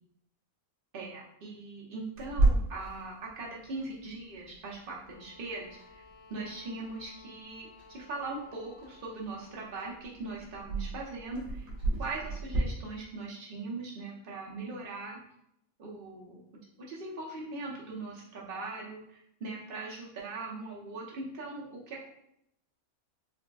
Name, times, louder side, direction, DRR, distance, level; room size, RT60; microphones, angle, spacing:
voice 1, 0.9-5.8 6.3-11.7 12.0-15.2 15.8-16.4 16.8-22.1, right 3 dB, 45° right, -4 dB, 0.9 m, -40 dB
Clock, 2.2-12.6, right 2 dB, 75° right, 1.5 m, -35 dB
sound 1, 4.9-9.7, left 4 dB, 80° left, 1.9 m, -56 dB
4.5 x 2.1 x 2.5 m, 0.77 s
omnidirectional pair, 1.5 m